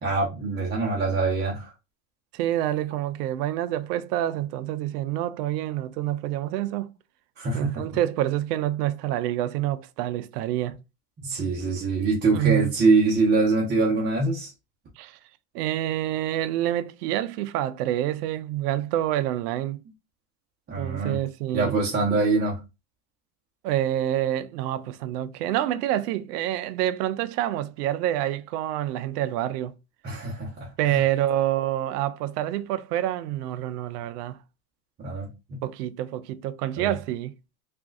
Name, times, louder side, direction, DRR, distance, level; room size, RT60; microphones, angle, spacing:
voice 1, 0.0-1.7 7.4-7.8 11.2-14.5 20.7-21.2 21.5-22.6 30.0-31.0 35.0-35.6 36.8-36.9, right 3 dB, 20° right, 0.9 m, -24 dB
voice 2, 2.3-6.9 7.5-10.8 12.3-12.7 15.0-15.2 15.5-19.8 20.8-21.7 23.6-29.7 30.8-34.4 35.6-37.3, right 13 dB, 75° right, 0.5 m, -27 dB
3.5 x 2.5 x 2.4 m
supercardioid pair, 125°, 48 cm